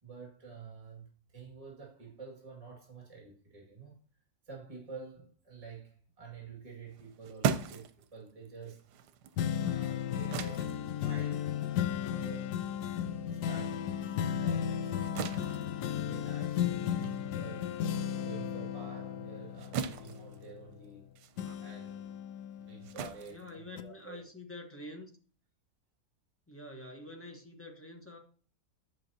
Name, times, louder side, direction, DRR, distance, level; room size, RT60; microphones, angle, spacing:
voice 1, 0.0-4.0 4.5-8.9 9.7-11.5 12.1-12.8 13.2-15.5 16.0-17.7 18.2-21.0 21.6-22.2 22.6-24.2, right 5 dB, 20° right, 2.2 m, -49 dB
sound 1, 6.9-13.7 14.1-24.3, right 7 dB, 80° right, 1.2 m, -41 dB
sound 2, 9.4-21.0 21.4-23.3 23.8-23.9, left 9 dB, 80° left, 1.2 m, -35 dB
voice 2, 23.3-25.1 26.5-28.2, left 2 dB, 10° left, 0.9 m, -47 dB
7.7 x 6.9 x 2.8 m
omnidirectional pair, 1.7 m